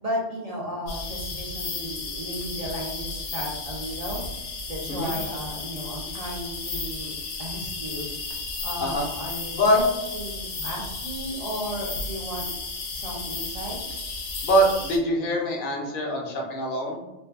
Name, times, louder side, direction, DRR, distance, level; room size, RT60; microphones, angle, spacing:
voice 1, 0.0-4.3 4.7-7.1 7.4-8.1 8.6-12.5 12.9-13.8, equal, 55° right, -4 dB, 0.4 m, -34 dB
sound 1, 0.9-15.0, left 3 dB, 90° left, 0.9 m, -34 dB
voice 2, 14.4-17.0, equal, 55° left, -1 dB, 0.7 m, -23 dB
2.5 x 2.5 x 2.3 m, 0.99 s
omnidirectional pair, 1.2 m